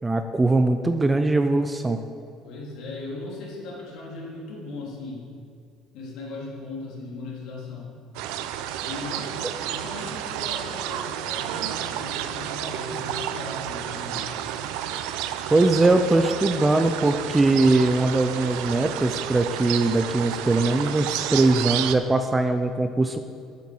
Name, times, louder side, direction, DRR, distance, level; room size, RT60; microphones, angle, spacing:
voice 1, 0.0-2.0 15.5-23.2, right 2 dB, 10° right, 8 dB, 0.4 m, -21 dB
voice 2, 2.4-5.3 5.9-7.9 8.8-9.3 9.7-14.3, left 2 dB, 60° left, -4 dB, 3.2 m, -37 dB
sound 1, 8.1-21.9, right 11 dB, 90° right, 0.6 m, -31 dB
9.3 x 7.6 x 7.0 m, 2.4 s
cardioid pair, 175°, 0 cm